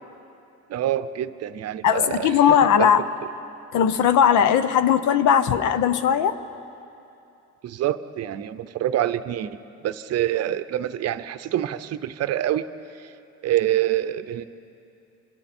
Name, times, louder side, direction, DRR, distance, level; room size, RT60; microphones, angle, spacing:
voice 1, 0.7-2.9 7.6-9.6 9.8-12.7 13.0-13.1 13.4-14.4, right 12 dB, 60° right, 12 dB, 0.7 m, -26 dB
voice 2, 1.8-3.0 3.7-6.4, left 8 dB, 85° left, 13 dB, 0.9 m, -18 dB
27.5 x 26.5 x 4.4 m, 2.7 s
cardioid pair, 165°, 29 cm